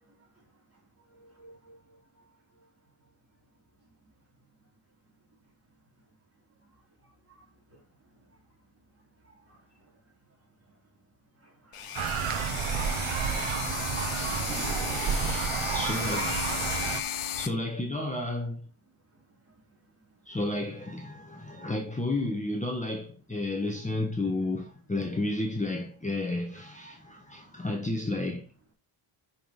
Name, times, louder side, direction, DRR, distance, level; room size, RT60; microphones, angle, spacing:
voice 1, 1.1-2.0 7.3-7.4 7.7-7.8 9.2-9.6 11.4-11.8 17.1-17.3 27.5-27.6, right 1 dB, 30° right, 3.2 m, -56 dB
sound 1, 11.7-17.5, left 9 dB, 90° left, 1.3 m, -35 dB
voice 2, 12.0-16.4 17.4-18.7 20.3-28.5, left 2 dB, 15° left, 1.4 m, -33 dB
sound 2, 12.0-17.0, right 7 dB, 75° right, 1.0 m, -30 dB
6.2 x 5.7 x 5.4 m
wide cardioid pair, 115°, 50 cm